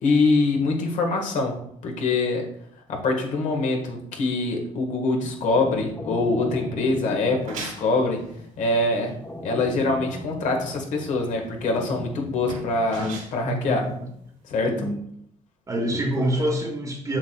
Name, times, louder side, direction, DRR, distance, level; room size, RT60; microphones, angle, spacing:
voice 1, 0.0-1.5 1.8-2.4 2.9-8.2 8.6-9.1 9.4-13.8 14.5-14.7 16.2-16.5, left 3 dB, 65° left, 2 dB, 1.6 m, -24 dB
sound 1, 5.3-13.2, left 1 dB, 20° left, 1.1 m, -40 dB
sound 2, 7.2-14.6, right 3 dB, 65° right, 2.1 m, -42 dB
voice 2, 13.4-13.9 14.6-15.0 15.7-17.2, right 1 dB, 25° right, 3 dB, 1.3 m, -26 dB
7.3 x 6.0 x 2.3 m, 0.70 s
cardioid pair, 100°, 14 cm